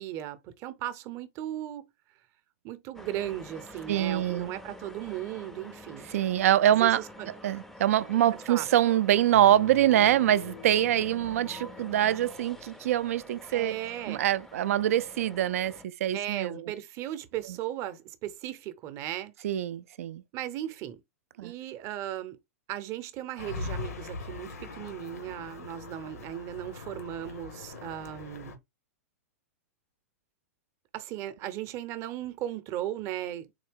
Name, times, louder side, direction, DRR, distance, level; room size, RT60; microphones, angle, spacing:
voice 1, 0.0-1.9 2.6-6.1 6.7-7.3 8.5-8.7 13.5-14.2 16.1-19.3 20.3-21.0 21.4-22.4 22.7-28.6 30.9-33.5, right 12 dB, 35° right, 0.6 m, -36 dB
sound 1, 2.9-15.8, left 1 dB, 5° left, 0.4 m, -47 dB
voice 2, 3.9-4.5 6.1-7.0 7.4-13.7 14.1-16.7 19.4-20.2 21.4-21.5, right 12 dB, 70° right, 0.4 m, -24 dB
sound 2, 9.3-12.9, left 14 dB, 65° left, 0.5 m, -47 dB
sound 3, 23.4-28.5, left 4 dB, 85° left, 1.0 m, -41 dB
3.9 x 2.7 x 3.4 m
hypercardioid pair, 130°, 8 cm